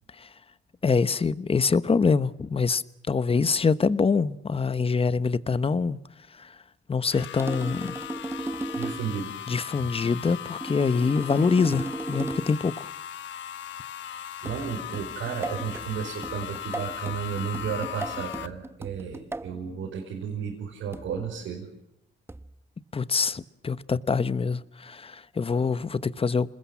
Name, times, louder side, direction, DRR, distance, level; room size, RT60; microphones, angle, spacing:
voice 1, 0.8-6.0 6.4-6.5 6.9-7.9 9.5-12.9 22.9-26.5, left 5 dB, 30° left, 1.1 m, -25 dB
sound 1, 7.1-18.5, left 10 dB, 70° left, 1.2 m, -38 dB
sound 2, 7.4-9.2 10.6-12.6 14.5-19.6 20.9-21.3 22.3-22.6, right 2 dB, 10° right, 1.1 m, -36 dB
voice 2, 8.8-9.3 14.4-21.7, right 7 dB, 85° right, 5.3 m, -33 dB
28.0 x 20.5 x 7.3 m
cardioid pair, 90°, 20 cm